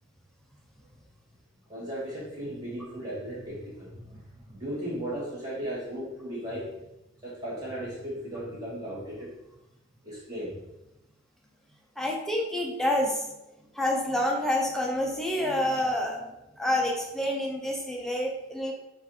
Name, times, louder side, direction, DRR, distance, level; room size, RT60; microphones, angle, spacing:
voice 1, 1.7-6.8 7.2-9.3 10.0-10.5, equal, 15° right, -8 dB, 1.6 m, -36 dB
voice 2, 12.0-13.3 13.7-16.3 16.6-18.7, left 1 dB, ahead, -1 dB, 0.6 m, -28 dB
4.7 x 2.6 x 4.2 m, 0.92 s
head